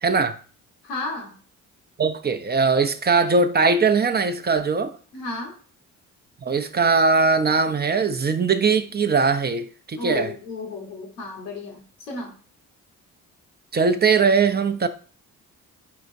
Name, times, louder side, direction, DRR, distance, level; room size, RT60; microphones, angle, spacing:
voice 1, 0.0-0.4 2.0-4.9 6.4-10.3 13.7-14.9, right 4 dB, 25° right, 0.5 m, -20 dB
voice 2, 0.8-1.4 5.1-5.6 10.0-12.3, left 3 dB, 90° left, 1.1 m, -33 dB
4.3 x 3.7 x 2.6 m
hypercardioid pair, 45°, 40 cm